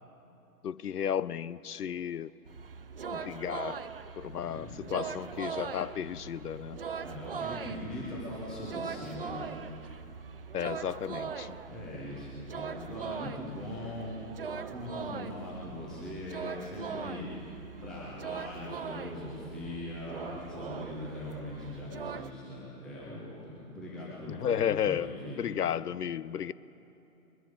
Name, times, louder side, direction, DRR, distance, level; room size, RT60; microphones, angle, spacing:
voice 1, 0.6-2.3 3.1-3.8 4.2-6.8 10.5-11.6 24.3-25.1 25.4-26.5, left 9 dB, 75° left, 18 dB, 0.6 m, -33 dB
sound 1, 2.4-22.3, right 6 dB, 40° right, 0.5 m, -41 dB
voice 2, 4.5-5.0 7.0-9.4 11.7-17.4 17.8-25.5, left 1 dB, ahead, -7 dB, 0.7 m, -41 dB
21.5 x 10.5 x 5.1 m, 2.9 s
figure-of-eight pair, 145°, 47 cm